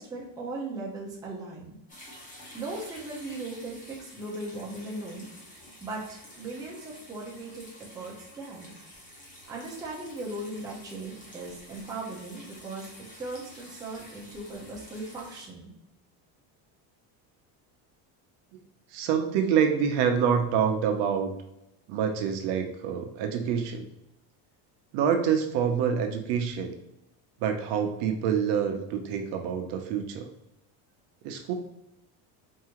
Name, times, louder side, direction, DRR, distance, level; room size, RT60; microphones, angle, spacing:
voice 1, 0.0-1.8 2.5-5.3 5.8-8.7 9.5-12.9 13.2-15.7, right 2 dB, 10° right, -4 dB, 0.6 m, -38 dB
sound 1, 1.9-15.5, left 1 dB, 20° left, 0.9 m, -49 dB
voice 2, 18.9-21.3 21.9-23.9 24.9-26.7 27.4-30.3 31.2-31.5, right 7 dB, 70° right, 4 dB, 0.7 m, -26 dB
4.8 x 2.7 x 2.9 m, 0.84 s
cardioid pair, 170°, 43 cm